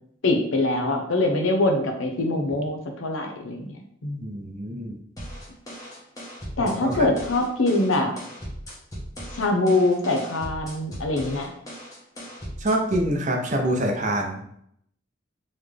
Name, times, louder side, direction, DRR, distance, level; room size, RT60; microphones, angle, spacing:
voice 1, 0.2-4.3 6.6-8.1 9.3-11.5, left 2 dB, 70° left, 3 dB, 0.8 m, -24 dB
voice 2, 4.2-5.0 6.6-7.1 12.6-14.4, right 1 dB, 35° right, 2 dB, 0.6 m, -26 dB
sound 1, 5.2-13.2, equal, 15° left, 1.1 m, -38 dB
4.0 x 3.2 x 3.3 m, 0.71 s
head